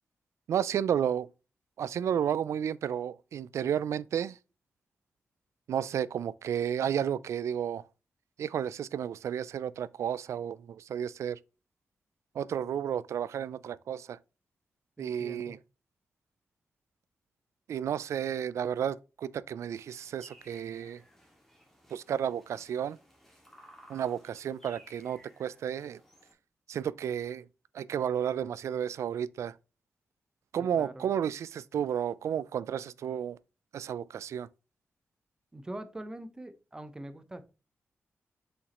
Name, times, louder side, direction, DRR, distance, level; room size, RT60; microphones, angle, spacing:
voice 1, 0.5-1.3 1.8-4.4 5.7-7.8 8.4-11.4 12.4-14.2 15.0-15.6 17.7-21.0 21.9-23.0 23.9-26.0 26.7-27.5 27.7-29.5 30.5-33.4 33.7-34.5, right 9 dB, 85° right, 0.3 m, -32 dB
voice 2, 15.0-15.6 30.6-31.1 35.5-37.4, right 1 dB, 15° right, 0.7 m, -43 dB
sound 1, 19.7-26.3, equal, 5° left, 1.8 m, -58 dB
6.9 x 5.1 x 2.9 m
wide cardioid pair, 160°, 5 cm